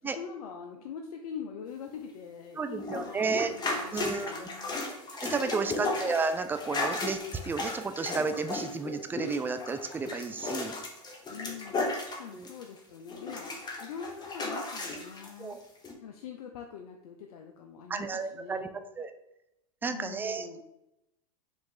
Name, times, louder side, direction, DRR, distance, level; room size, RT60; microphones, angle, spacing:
voice 1, 0.1-4.8 5.6-6.1 11.3-15.6 16.0-18.7 19.8-20.6, left 7 dB, 75° left, 4 dB, 0.5 m, -44 dB
voice 2, 2.6-3.5 3.9-4.5 5.2-7.2 7.5-10.7 12.3-12.5 15.4-15.6 17.9-18.7 19.0-19.1 19.8-20.6, right 4 dB, 10° right, 8 dB, 0.3 m, -32 dB
sound 1, 2.8-12.8 13.1-15.3 15.8-15.9, left 3 dB, 20° left, 0.9 m, -35 dB
4.8 x 2.5 x 3.7 m, 0.87 s
hypercardioid pair, 105°, 19 cm